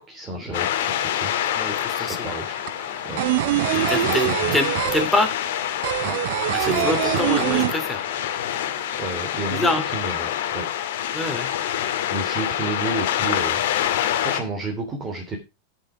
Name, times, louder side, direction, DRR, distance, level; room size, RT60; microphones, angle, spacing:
voice 1, 0.1-1.3 1.6-2.6 3.0-3.2 3.7-4.5 6.0-6.2 6.5-7.2 9.0-10.7 12.1-13.6 14.2-15.4, right 3 dB, 25° right, 0 dB, 3.0 m, -31 dB
sound 1, 0.5-14.4, left 11 dB, 75° left, 2.1 m, -26 dB
sound 2, 1.4-1.5 1.8-8.4 8.6-8.7 9.0-9.8, right 18 dB, 65° right, 0.5 m, -24 dB
voice 2, 1.5-2.3 3.7-5.3 6.5-8.1 9.4-9.9 11.1-11.5, left 2 dB, 5° left, 6 dB, 2.6 m, -26 dB
12.0 x 5.8 x 5.0 m, 0.27 s
supercardioid pair, 125°, 0 cm